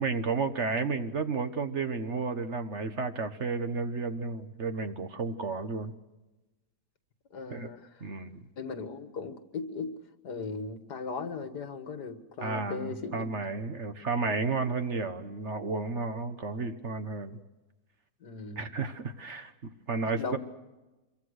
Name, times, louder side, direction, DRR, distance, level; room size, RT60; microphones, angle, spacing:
voice 1, 0.0-5.9 7.5-7.7 8.0-8.4 12.4-17.4 18.6-19.5 19.9-20.4, right 4 dB, 45° right, 9 dB, 1.4 m, -32 dB
voice 2, 7.3-7.9 8.6-10.0 10.2-13.3 18.2-18.7 20.2-20.4, left 4 dB, 80° left, 9 dB, 2.3 m, -37 dB
26.5 x 23.5 x 6.5 m, 1.1 s
omnidirectional pair, 1.7 m